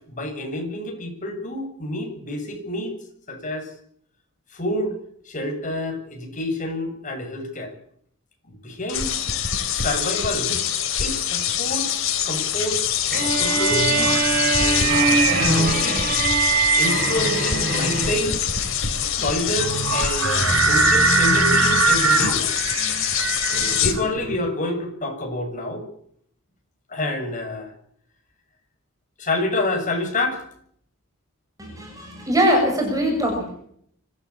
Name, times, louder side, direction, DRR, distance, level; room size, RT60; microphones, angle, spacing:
voice 1, 0.0-2.9 3.3-3.7 4.5-5.0 5.3-7.7 8.4-9.1 9.7-10.6 11.0-12.8 13.2-14.2 14.6-16.1 16.8-18.5 19.2-22.6 23.5-25.9 26.9-27.7 29.2-30.4, left 1 dB, 40° left, 3 dB, 7.4 m, -28 dB
sound 1, 8.9-23.9, left 9 dB, 70° left, 3.6 m, -24 dB
sound 2, 12.9-24.4, right 4 dB, 85° right, 5.4 m, -23 dB
sound 3, 13.1-18.4, right 4 dB, 50° right, 7.3 m, -23 dB
voice 2, 31.6-33.6, equal, 15° right, 2 dB, 6.6 m, -22 dB
25.0 x 16.0 x 8.7 m, 0.65 s
head